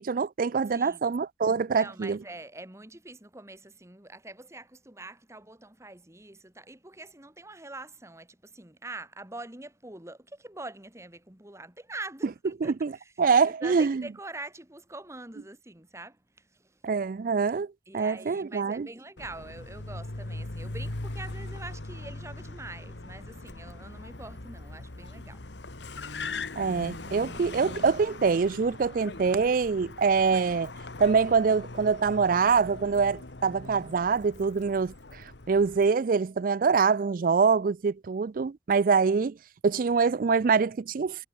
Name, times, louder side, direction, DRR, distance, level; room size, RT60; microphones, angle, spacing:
voice 1, 0.0-2.2 12.6-14.0 16.8-18.9 26.6-30.7 31.0-39.4 39.6-41.3, right 5 dB, 50° right, 0.4 m, -25 dB
voice 2, 0.7-1.0 1.7-16.8 17.9-25.4, right 2 dB, 15° right, 2.0 m, -44 dB
Car, 19.2-35.9, left 2 dB, 85° left, 1.8 m, -40 dB
head